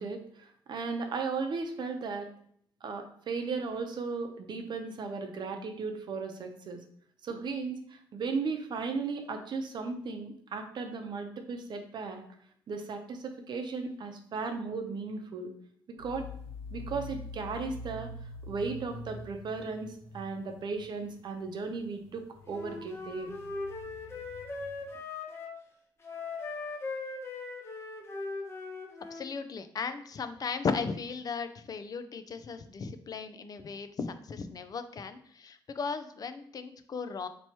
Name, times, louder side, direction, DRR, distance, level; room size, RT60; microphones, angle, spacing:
voice 1, 0.0-2.3 2.8-6.8 7.2-12.2 12.7-15.5 15.9-16.3 16.7-18.1 18.4-23.3, right 4 dB, 55° right, 5 dB, 0.7 m, -36 dB
sound 1, 16.0-24.9, left 1 dB, 80° left, 1.5 m, -46 dB
Wind instrument woodwind instrument, 22.5-25.6 26.0-29.3, left 3 dB, 30° left, 1.0 m, -39 dB
voice 2, 29.1-37.3, left 5 dB, 45° left, 10 dB, 0.4 m, -36 dB
3.0 x 2.9 x 4.5 m, 0.64 s
cardioid pair, 85°, 9 cm